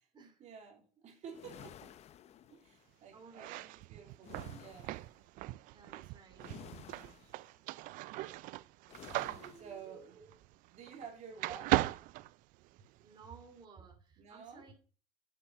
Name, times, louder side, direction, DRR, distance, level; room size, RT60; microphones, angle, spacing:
voice 1, 0.4-2.0 2.5-5.0 9.3-10.2 10.7-11.9 14.2-14.7, right 7 dB, 55° right, 2.9 m, -51 dB
sound 1, 1.3-2.9 4.2-5.2 6.4-7.5 8.9-9.8, left 10 dB, 50° left, 0.7 m, -54 dB
voice 2, 3.1-3.7 5.7-7.3 9.3-10.3 13.0-14.7, right 4 dB, 35° right, 2.7 m, -57 dB
sound 2, 3.3-11.1 11.4-13.0, right 19 dB, 70° right, 0.4 m, -38 dB
7.5 x 7.1 x 6.0 m
cardioid pair, 110°, 14 cm